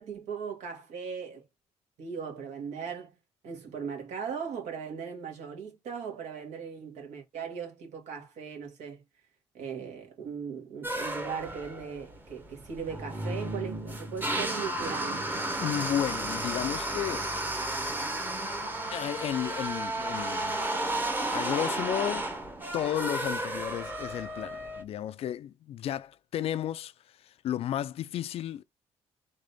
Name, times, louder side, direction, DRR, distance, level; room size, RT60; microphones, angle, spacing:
voice 1, 0.0-1.4 2.0-3.1 3.4-9.0 9.5-15.3, right 6 dB, 85° right, 2.1 m, -38 dB
sound 1, 10.8-24.8, right 1 dB, 15° right, 0.9 m, -33 dB
voice 2, 15.6-17.3 18.9-20.6 21.3-22.3 22.7-26.9 27.2-28.6, left 11 dB, 55° left, 0.4 m, -33 dB
3.9 x 3.8 x 3.4 m
cardioid pair, 150°, 12 cm